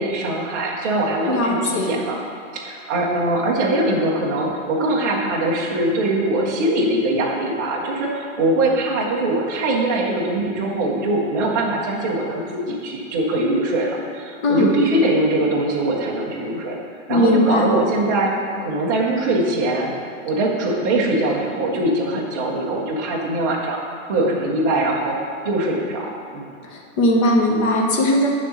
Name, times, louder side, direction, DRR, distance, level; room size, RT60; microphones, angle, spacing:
voice 1, 0.0-2.2 2.5-16.8 17.1-18.3 18.6-19.9 20.2-23.8 24.1-25.2 25.4-26.4, right 2 dB, 15° right, -4 dB, 0.4 m, -22 dB
voice 2, 1.3-1.9 14.4-14.7 17.1-17.7 26.7-28.3, left 1 dB, 25° left, 0 dB, 0.7 m, -19 dB
9.8 x 3.6 x 6.3 m, 2.4 s
supercardioid pair, 175°, 40 cm